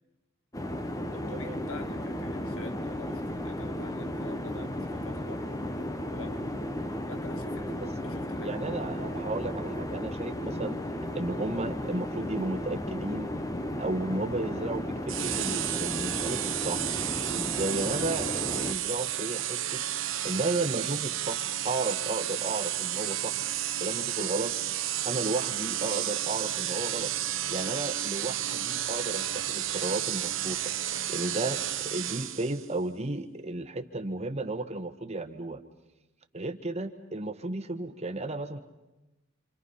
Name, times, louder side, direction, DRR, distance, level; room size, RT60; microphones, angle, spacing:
sound 1, 0.5-18.7, left 1 dB, 15° left, 1.0 m, -34 dB
voice 1, 1.1-5.6 6.1-6.6 7.1-8.6, left 3 dB, 75° left, 9 dB, 1.7 m, -47 dB
voice 2, 8.3-10.8 11.1-13.3 13.8-16.9 17.3-19.8 20.2-23.4 23.8-24.6 25.0-27.1 27.5-30.6 30.9-35.6 36.3-38.6, right 2 dB, 30° right, 8 dB, 1.3 m, -33 dB
sound 2, 15.1-32.7, right 12 dB, 65° right, 1.1 m, -32 dB
27.5 x 27.0 x 5.6 m, 1.0 s
head